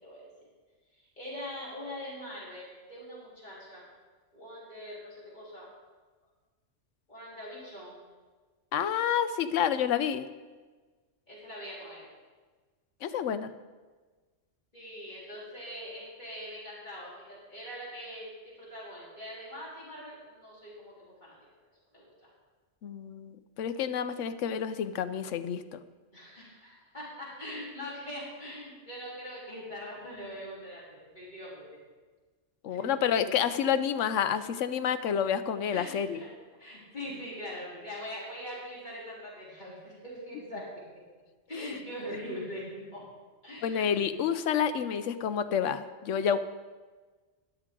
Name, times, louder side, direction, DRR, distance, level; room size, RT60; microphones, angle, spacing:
voice 1, 0.9-3.9 4.3-5.7 7.1-8.0 11.3-12.1 14.7-21.3 21.9-22.3 26.1-31.7 32.7-32.8 35.7-36.3 36.6-40.7 41.5-43.0 43.4-43.9, equal, 35° left, -8 dB, 3.8 m, -42 dB
voice 2, 8.7-10.3 13.0-13.5 22.8-25.8 32.6-36.2 41.6-41.7 43.6-46.4, left 8 dB, 75° left, 11 dB, 1.0 m, -29 dB
13.0 x 11.0 x 3.7 m, 1.4 s
omnidirectional pair, 1.3 m